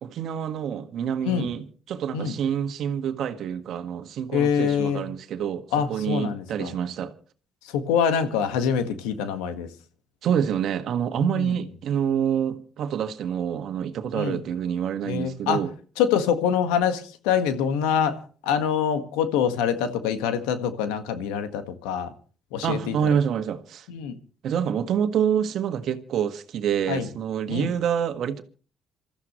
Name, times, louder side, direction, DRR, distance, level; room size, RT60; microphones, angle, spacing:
voice 1, 0.0-7.1 10.2-15.7 22.6-23.9 24.4-28.4, right 8 dB, 65° right, 1.7 m, -27 dB
voice 2, 4.3-5.1 5.7-6.7 7.7-9.7 11.3-11.5 14.1-14.4 15.0-15.6 16.0-22.1 22.5-23.2 23.9-24.1 26.9-27.1 27.5-27.7, left 8 dB, 85° left, 1.6 m, -25 dB
27.0 x 14.0 x 3.1 m
supercardioid pair, 60°, 0 cm